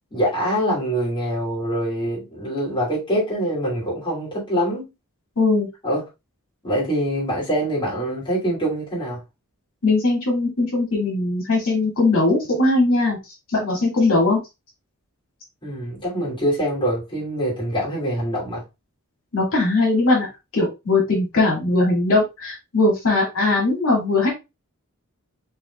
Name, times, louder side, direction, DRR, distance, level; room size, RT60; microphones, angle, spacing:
voice 1, 0.1-4.9 5.8-6.0 6.6-9.2 15.6-18.6, equal, 20° left, 2.8 m, -24 dB
voice 2, 5.4-5.7 9.8-13.2 13.5-14.4 19.3-20.3 20.5-24.3, left 2 dB, 65° left, 2.5 m, -20 dB
5.6 x 4.1 x 2.3 m
head